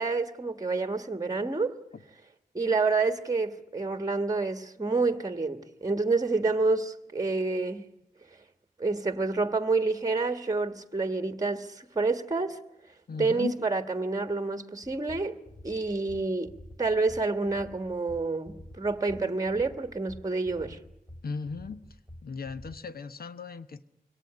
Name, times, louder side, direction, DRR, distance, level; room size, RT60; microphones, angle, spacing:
voice 1, 0.0-1.8 2.5-7.9 8.8-12.6 13.2-15.4 15.6-20.8, right 3 dB, 20° right, 1.4 m, -28 dB
voice 2, 13.1-13.5 21.2-21.8 22.2-23.8, left 5 dB, 75° left, 1.1 m, -37 dB
sound 1, 14.8-22.8, left 1 dB, 5° left, 1.0 m, -48 dB
23.5 x 18.0 x 9.8 m
wide cardioid pair, 70°, 16 cm